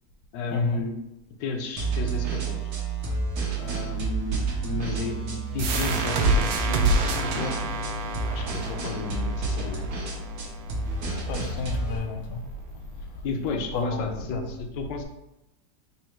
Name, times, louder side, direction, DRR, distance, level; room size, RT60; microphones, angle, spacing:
voice 1, 0.3-1.0 1.4-2.6 3.6-7.6 8.3-9.9 13.2-15.0, left 4 dB, 85° left, 3 dB, 1.2 m, -33 dB
sound 1, 1.8-12.0, right 3 dB, 65° right, 1.2 m, -30 dB
sound 2, 5.6-11.0, right 2 dB, 85° right, 1.3 m, -28 dB
voice 2, 11.3-12.4 13.7-14.5, left 3 dB, 70° left, 1 dB, 1.0 m, -31 dB
4.0 x 2.1 x 4.4 m, 0.90 s
omnidirectional pair, 1.9 m